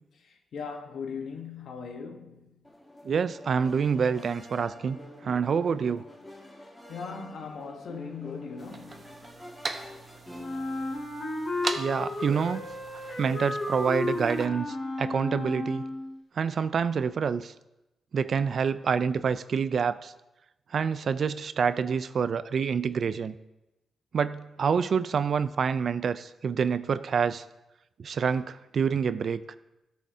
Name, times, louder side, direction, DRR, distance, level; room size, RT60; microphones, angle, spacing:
voice 1, 0.2-2.5 6.9-9.2, left 5 dB, 75° left, 1.1 m, -39 dB
sound 1, 2.6-10.9, equal, 15° left, 1.9 m, -47 dB
voice 2, 3.0-6.0 11.8-12.6 13.2-14.7 15.0-15.8 16.4-17.5 18.1-20.1 20.7-23.3 24.1-27.4 28.0-29.6, right 6 dB, 55° right, 0.4 m, -27 dB
sound 2, 8.6-14.5, right 3 dB, 35° right, 0.8 m, -40 dB
Wind instrument woodwind instrument, 10.4-16.2, left 2 dB, 50° left, 2.2 m, -33 dB
13.5 x 6.3 x 2.8 m
cardioid pair, 95°, 0 cm